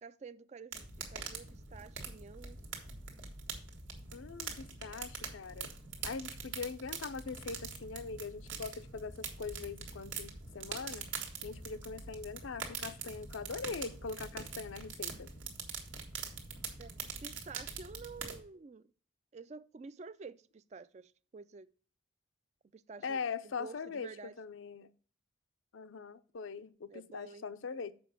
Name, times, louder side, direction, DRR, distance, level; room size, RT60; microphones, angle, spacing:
voice 1, 0.0-2.6 16.8-16.9 17.2-18.9 19.3-21.7 22.7-24.4 26.9-27.5, right 4 dB, 35° right, 0.3 m, -50 dB
sound 1, 0.7-18.4, right 5 dB, 75° right, 1.7 m, -44 dB
voice 2, 4.1-5.7 6.0-11.1 11.4-15.4 23.0-24.1 24.4-24.9 25.7-27.9, left 5 dB, 80° left, 0.6 m, -42 dB
6.9 x 5.0 x 6.1 m
head